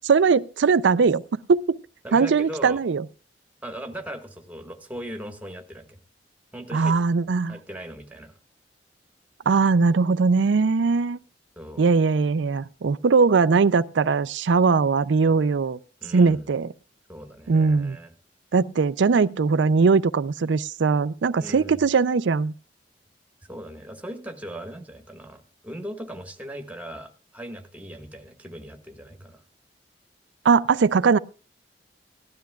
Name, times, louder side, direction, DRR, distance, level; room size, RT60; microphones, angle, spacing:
voice 1, 0.0-1.2 1.5-1.8 2.1-3.0 6.7-7.6 9.5-11.2 11.8-15.8 16.1-16.7 17.5-18.0 18.5-22.5 30.4-31.2, right 4 dB, 90° right, 0.5 m, -20 dB
voice 2, 2.0-2.8 3.6-6.0 6.5-6.9 7.5-8.3 11.6-11.9 16.0-16.5 17.1-18.1 21.4-21.8 23.5-29.4, equal, 10° right, 1.4 m, -38 dB
18.5 x 12.5 x 2.3 m
head